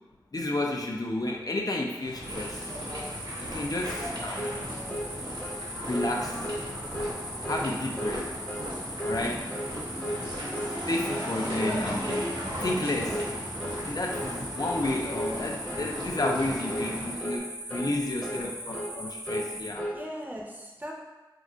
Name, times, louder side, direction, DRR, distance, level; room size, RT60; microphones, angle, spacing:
voice 1, 0.3-2.7 3.4-4.5 5.9-6.4 7.4-8.3 9.0-9.5 10.9-12.1 12.6-13.3 13.8-19.9, left 2 dB, 55° left, 0 dB, 0.4 m, -31 dB
sound 1, 2.0-17.2, equal, 85° right, 0.8 m, -37 dB
sound 2, 2.2-19.7, equal, 50° right, 0.7 m, -40 dB
sound 3, 3.9-4.1 4.4-4.6 4.9-5.1 5.4-5.6 5.9-6.1 6.4-6.6 6.9-7.2 7.4-7.7 8.0-8.2 8.5-8.7 9.0-9.2 9.5-9.7 10.0-10.2 10.5-10.8 11.0-11.3 11.5-11.8 12.1-12.3 12.6-12.8 13.1-13.3 13.6-13.8 14.1-14.3 14.6-14.9 15.1-15.4 15.7-15.9 16.2-16.4 16.7-16.9 17.2-17.4 17.7-17.9 18.2-18.5 18.7-19.0 19.3-20.0, equal, 15° left, 0.7 m, -34 dB
voice 2, 11.3-11.8 17.8-18.0 18.3-18.5 19.4-20.9, equal, 20° right, -2 dB, 0.6 m, -42 dB
2.3 x 2.3 x 3.7 m, 1.2 s
wide cardioid pair, 45°, 8 cm